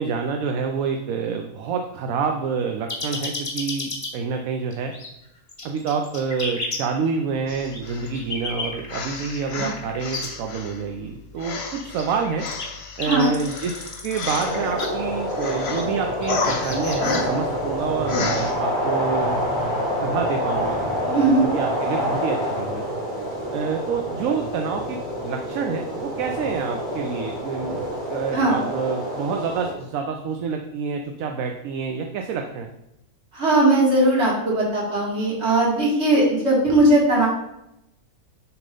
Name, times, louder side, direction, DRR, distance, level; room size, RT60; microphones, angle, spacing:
voice 1, 0.0-4.9 5.6-12.5 13.0-19.4 20.0-20.8 21.5-22.9 23.5-25.0 25.2-27.8 28.1-32.7, right 5 dB, 75° right, 3 dB, 1.0 m, -27 dB
sound 1, 2.9-4.1 4.7-5.1 5.5-6.8 7.6-10.3 11.6-14.9 15.6-17.3, left 3 dB, 30° left, 1.1 m, -32 dB
sound 2, 7.5-8.2 8.9-10.8 11.4-14.9 15.3-15.9 16.3-17.5 18.1-18.5, left 4 dB, 50° left, 0.9 m, -31 dB
sound 3, 14.4-29.7, equal, 35° right, 2.6 m, -27 dB
voice 2, 21.1-21.5 28.3-28.6 33.3-37.3, right 2 dB, 50° right, -5 dB, 2.2 m, -19 dB
6.8 x 3.0 x 5.3 m, 0.83 s
omnidirectional pair, 1.5 m